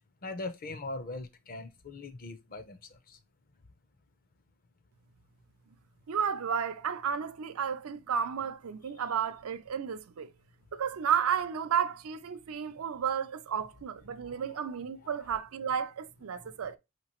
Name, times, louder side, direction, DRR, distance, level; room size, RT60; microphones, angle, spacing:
voice 1, 0.2-2.8 3.1-3.2 14.2-14.4 16.4-16.5, left 2 dB, 40° left, 0.6 m, -40 dB
voice 2, 6.1-10.3 10.7-16.8, right 7 dB, 80° right, 0.5 m, -32 dB
5.6 x 2.9 x 2.9 m
head